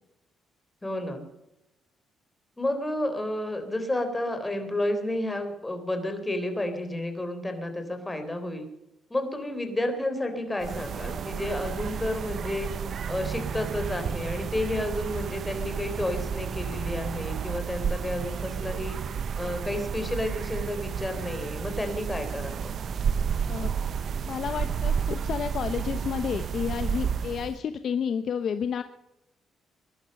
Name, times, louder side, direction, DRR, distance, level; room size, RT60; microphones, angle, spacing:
voice 1, 0.8-1.2 2.6-8.7 9.1-19.0 19.4-22.7, left 1 dB, 15° left, 6 dB, 3.7 m, -31 dB
sound 1, 10.6-27.6, right 7 dB, 55° right, 0.9 m, -31 dB
voice 2, 24.3-28.8, left 7 dB, 60° left, 10 dB, 0.9 m, -30 dB
21.5 x 11.5 x 5.4 m, 0.88 s
cardioid pair, 90°, 0 cm